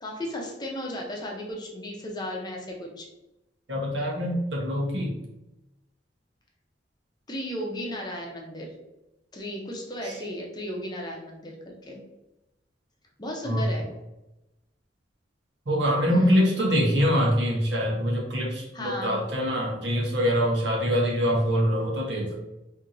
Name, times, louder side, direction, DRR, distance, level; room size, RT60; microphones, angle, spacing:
voice 1, 0.0-3.1 7.3-8.7 9.3-12.0 13.2-13.9 16.1-16.6 18.7-19.2, left 1 dB, 25° left, -1 dB, 0.7 m, -35 dB
voice 2, 3.7-5.1 13.4-13.6 15.7-22.3, equal, 70° right, -2 dB, 1.1 m, -24 dB
4.4 x 2.8 x 2.6 m, 0.94 s
head